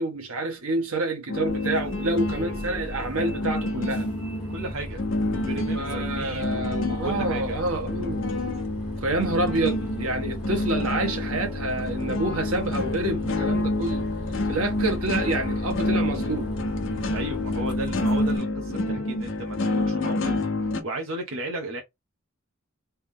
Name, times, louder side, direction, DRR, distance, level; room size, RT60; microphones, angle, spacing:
voice 1, 0.0-4.1 5.7-8.3 9.0-14.0 14.5-16.5, right 2 dB, 85° right, 1.3 m, -28 dB
sound 1, 1.3-20.8, left 2 dB, 60° left, 0.9 m, -28 dB
Bus, 1.5-18.4, equal, 5° right, 1.8 m, -37 dB
voice 2, 4.5-5.0 5.3-7.5 17.1-21.8, right 2 dB, 65° right, 0.9 m, -35 dB
3.5 x 3.0 x 3.5 m
head